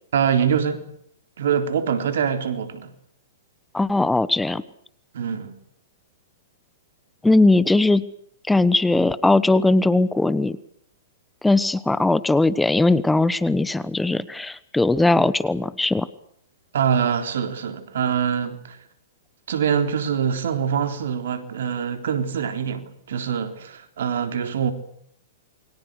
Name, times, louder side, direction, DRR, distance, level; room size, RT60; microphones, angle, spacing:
voice 1, 0.1-0.8 1.4-2.9 5.1-5.6 16.7-18.8 19.5-24.7, right 7 dB, 70° right, 3.8 m, -24 dB
voice 2, 3.7-4.6 7.2-8.0 8.5-10.6 11.4-16.1, left 2 dB, 5° left, 1.2 m, -19 dB
29.0 x 23.0 x 6.5 m
hypercardioid pair, 120°, 0 cm